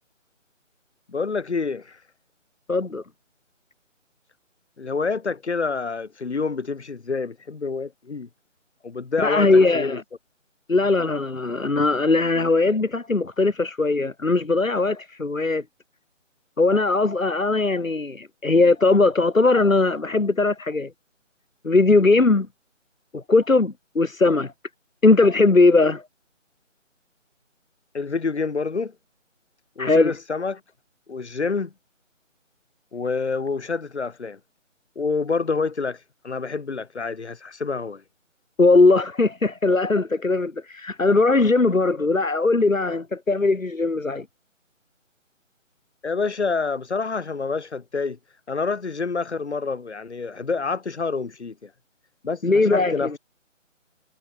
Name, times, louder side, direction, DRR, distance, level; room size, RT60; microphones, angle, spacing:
voice 1, 1.1-2.0 4.8-8.3 8.8-9.5 9.7-10.0 27.9-28.9 29.8-30.6 31.1-31.7 32.9-34.4 34.9-36.0 36.2-38.0 46.0-48.2 48.5-51.7 52.2-53.1, left 4 dB, 60° left, 5.0 m, -27 dB
voice 2, 2.7-3.0 9.2-10.0 10.7-15.6 16.6-20.9 21.6-22.5 23.1-24.5 25.0-26.0 29.8-30.1 38.6-44.2 52.4-53.2, left 3 dB, 85° left, 3.1 m, -19 dB
figure-of-eight pair, 160°, 39 cm